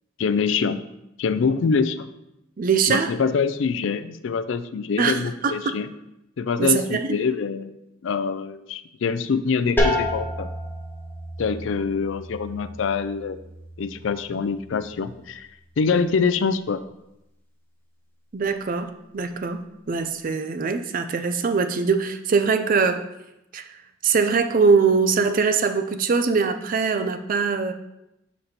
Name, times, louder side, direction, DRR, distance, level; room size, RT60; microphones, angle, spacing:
voice 1, 0.2-0.8 1.2-2.1 2.9-5.9 6.4-7.7 8.0-10.5 11.4-13.4 13.8-15.5 15.8-16.8, left 5 dB, 70° left, 11 dB, 0.4 m, -24 dB
voice 2, 2.6-3.1 5.0-5.8 6.6-7.2 18.3-19.6 19.9-23.0 23.5-23.8 24.0-27.7, right 5 dB, 45° right, 9 dB, 0.4 m, -22 dB
sound 1, 9.8-15.3, left 1 dB, 10° left, 0.9 m, -30 dB
6.6 x 4.1 x 4.2 m, 0.88 s
head